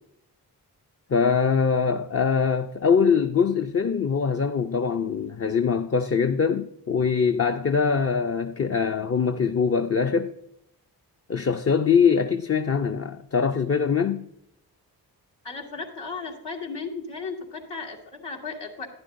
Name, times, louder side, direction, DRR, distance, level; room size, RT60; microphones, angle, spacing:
voice 1, 1.1-10.3 11.3-14.3, left 6 dB, 35° left, 0.5 m, -23 dB
voice 2, 15.4-18.9, left 4 dB, 75° left, 2.0 m, -35 dB
11.5 x 10.0 x 2.6 m
cardioid pair, 45°, 42 cm